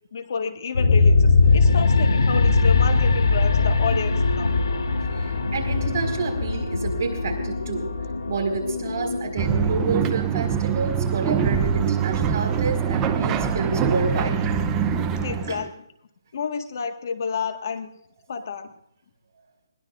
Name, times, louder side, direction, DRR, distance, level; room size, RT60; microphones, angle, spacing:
voice 1, 0.1-4.5 15.2-15.9 16.3-17.9 18.3-18.7, left 6 dB, 50° left, 7 dB, 1.7 m, -30 dB
sound 1, 0.7-10.0, left 3 dB, 90° left, 2.4 m, -21 dB
voice 2, 5.2-7.9 8.3-14.4 15.5-15.6, right 4 dB, 40° right, 0 dB, 5.0 m, -29 dB
sound 2, 9.4-15.7, right 7 dB, 15° right, 0.8 m, -24 dB
21.5 x 19.5 x 2.6 m, 0.75 s
hypercardioid pair, 165°, 2 cm